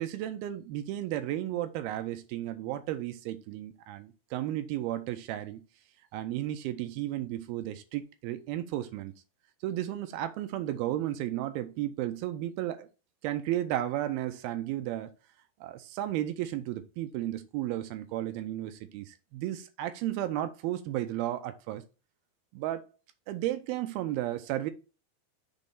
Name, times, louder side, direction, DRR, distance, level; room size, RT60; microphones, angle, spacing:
voice 1, 0.0-5.6 6.1-9.1 9.6-12.9 13.2-15.1 15.6-21.8 22.5-22.9 23.3-24.7, right 13 dB, 80° right, 2.4 m, -33 dB
6.7 x 3.1 x 5.2 m
omnidirectional pair, 4.5 m